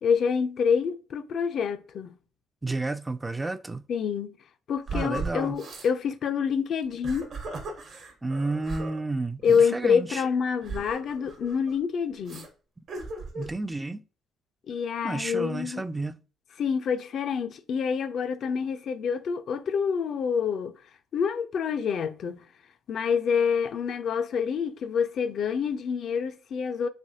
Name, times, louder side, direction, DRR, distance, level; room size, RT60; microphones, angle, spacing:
voice 1, 0.0-2.2 3.9-4.4 4.7-7.3 9.4-12.5 14.7-15.8 16.6-20.8 21.1-22.5 22.9-26.9, left 6 dB, 60° left, 0.4 m, -27 dB
voice 2, 2.6-3.8 4.9-5.6 8.2-10.2 13.4-14.0 15.0-16.2, right 2 dB, 20° right, 0.3 m, -31 dB
sound 1, 4.9-5.9 6.8-9.0 9.4-9.6 10.6-11.8 12.3-12.5 12.9-13.5, right 3 dB, 60° right, 1.0 m, -37 dB
3.3 x 3.2 x 2.7 m
hypercardioid pair, 55°, 0 cm